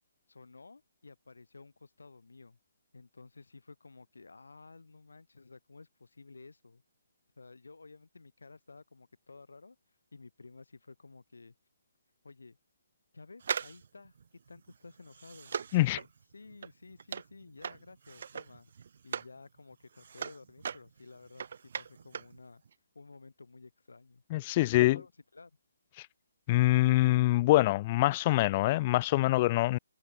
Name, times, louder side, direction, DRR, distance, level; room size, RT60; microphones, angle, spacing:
voice 1, 0.3-2.6 2.9-6.8 7.4-9.8 10.1-11.5 12.2-12.6 13.1-14.2 14.5-15.5 15.8-16.1 16.3-18.7 19.0-22.6 22.9-24.2 24.6-25.5, left 3 dB, 75° left, 7.6 m, -53 dB
sound 1, 13.4-19.4 19.7-22.4 22.6-22.7, right 7 dB, 55° right, 0.7 m, -40 dB
voice 2, 24.3-25.0 26.5-29.8, left 18 dB, 30° left, 0.4 m, -25 dB
figure-of-eight pair, 145°, 0 cm